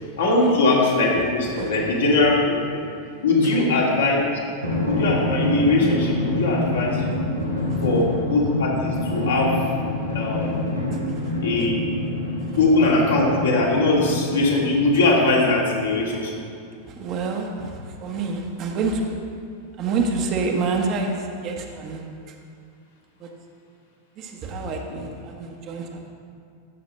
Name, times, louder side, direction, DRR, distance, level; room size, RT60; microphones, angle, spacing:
voice 1, 0.2-2.8 3.2-4.2 4.8-7.0 7.8-9.5 10.1-10.6 11.4-11.8 12.6-16.4, left 2 dB, 65° left, -4 dB, 2.1 m, -20 dB
voice 2, 1.5-1.9 3.4-3.7 7.7-7.9 10.9-11.7 12.4-12.6 16.9-19.2 19.8-22.4 23.2-23.3 24.1-26.1, right 4 dB, 35° right, 2 dB, 1.0 m, -28 dB
Drum, 4.6-15.7, left 1 dB, 90° left, 1.5 m, -26 dB
14.5 x 6.1 x 3.3 m, 2.3 s
figure-of-eight pair, 90°, 0 cm